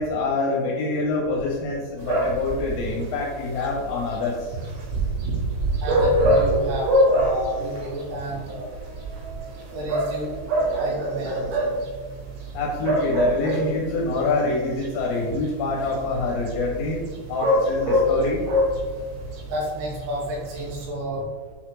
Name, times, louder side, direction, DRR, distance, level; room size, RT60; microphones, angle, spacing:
voice 1, 0.0-4.5 12.5-17.0 17.3-18.4, left 3 dB, 75° left, -3 dB, 3.2 m, -26 dB
sound 1, 2.0-20.9, equal, 65° right, 3.2 m, -26 dB
voice 2, 5.8-8.7 9.7-10.4 10.8-11.8 19.5-21.2, equal, 85° right, -4 dB, 4.3 m, -30 dB
8.3 x 4.1 x 3.1 m, 1.4 s
omnidirectional pair, 5.5 m